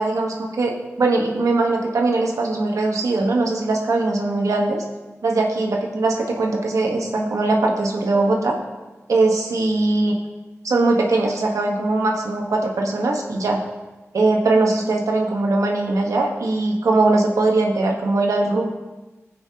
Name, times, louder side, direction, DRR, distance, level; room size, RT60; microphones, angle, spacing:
voice 1, 0.0-4.8 5.2-8.5 9.1-10.1 10.6-13.6 14.1-18.7, right 2 dB, 85° right, 0 dB, 1.2 m, -20 dB
16.5 x 5.7 x 2.9 m, 1.2 s
cardioid pair, 50°, 5 cm